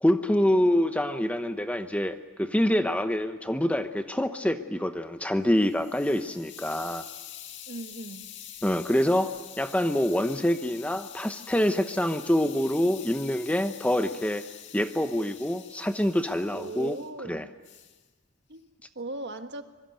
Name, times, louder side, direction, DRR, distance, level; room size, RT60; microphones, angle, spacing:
voice 1, 0.0-7.0 8.6-14.4 14.7-17.0 17.3-17.5, left 1 dB, 5° left, 8 dB, 0.8 m, -26 dB
Hiss, 5.3-17.1 17.6-18.0, left 10 dB, 55° left, 2.2 m, -46 dB
voice 2, 7.7-8.3 16.5-17.5 18.5-19.6, right 2 dB, 50° right, 8 dB, 1.4 m, -38 dB
25.0 x 22.0 x 9.1 m, 1.4 s
head